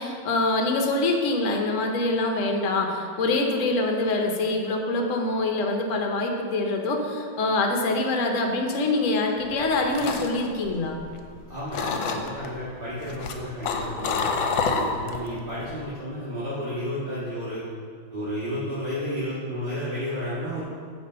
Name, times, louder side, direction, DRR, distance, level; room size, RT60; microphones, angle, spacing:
voice 1, 0.0-11.0, left 2 dB, 55° left, 3 dB, 0.9 m, -25 dB
sound 1, 9.5-11.4 11.7-12.5 13.0-15.3 15.6-15.9, left 5 dB, 75° left, 1.3 m, -28 dB
voice 2, 11.5-14.4 14.7-17.6 18.1-20.6, equal, 30° right, -12 dB, 1.5 m, -32 dB
9.2 x 3.4 x 5.5 m, 2.1 s
omnidirectional pair, 2.1 m